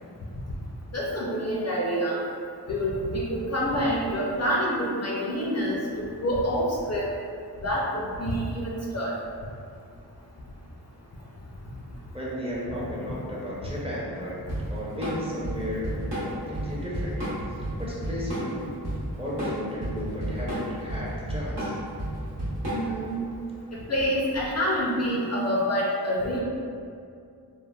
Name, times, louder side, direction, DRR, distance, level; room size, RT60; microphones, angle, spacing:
voice 1, 0.9-2.2 2.7-5.8 6.2-7.1 7.6-9.1 13.1-13.2 22.7-23.2 23.9-26.4, equal, 40° left, -5 dB, 0.4 m, -27 dB
voice 2, 12.1-14.4 14.7-17.2 17.8-18.8 19.2-21.8, equal, 15° right, -7 dB, 0.5 m, -34 dB
Drum kit / Drum, 14.5-23.1, right 1 dB, 85° right, 1.0 m, -31 dB
3.2 x 2.0 x 2.3 m, 2.4 s
wide cardioid pair, 90°, 40 cm